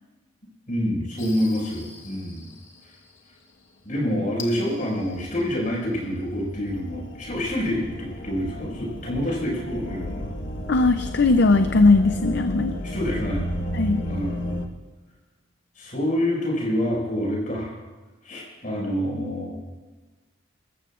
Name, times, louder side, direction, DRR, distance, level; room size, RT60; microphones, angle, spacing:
voice 1, 0.7-2.5 3.8-10.3 12.8-13.4 14.0-14.6 15.8-17.8 18.2-19.6, equal, 40° left, -4 dB, 5.7 m, -27 dB
sound 1, 1.2-2.4 4.4-14.7, left 1 dB, 80° left, 1.4 m, -33 dB
voice 2, 10.7-12.7 13.7-14.0, left 3 dB, 60° left, 8 dB, 0.5 m, -18 dB
24.5 x 14.0 x 2.5 m, 1.3 s
head